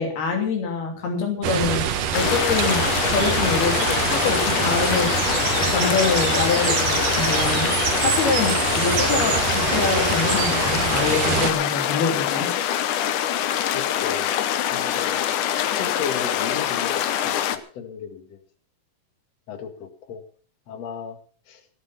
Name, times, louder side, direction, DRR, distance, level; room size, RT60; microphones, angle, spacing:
voice 1, 0.0-1.8 2.1-2.9 3.1-7.7 8.0-12.5, left 5 dB, 90° left, 2 dB, 5.0 m, -25 dB
sound 1, 1.4-11.5, right 8 dB, 65° right, 2.9 m, -24 dB
sound 2, 2.1-17.6, left 10 dB, 70° left, 2.1 m, -24 dB
voice 2, 13.7-14.3 14.7-15.2 15.6-17.0 17.2-18.4 19.5-20.2 20.7-21.2 21.5-21.6, left 6 dB, 50° left, 8 dB, 2.5 m, -35 dB
17.5 x 10.0 x 5.9 m, 0.43 s
omnidirectional pair, 4.3 m